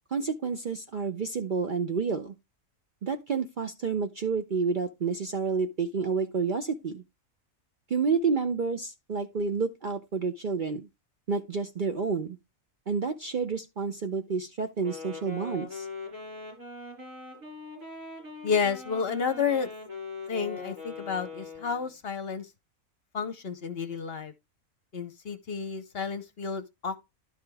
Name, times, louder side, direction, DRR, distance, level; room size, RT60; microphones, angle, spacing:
voice 1, 0.1-2.3 3.0-7.0 7.9-10.9 11.3-12.4 12.9-15.9, right 5 dB, 50° right, 0.7 m, -29 dB
Wind instrument woodwind instrument, 14.8-21.9, left 3 dB, 75° right, 5.6 m, -41 dB
voice 2, 18.4-19.7 20.3-22.5 23.1-24.3 24.9-27.0, left 6 dB, 50° left, 0.9 m, -31 dB
11.5 x 5.0 x 3.4 m
omnidirectional pair, 1.4 m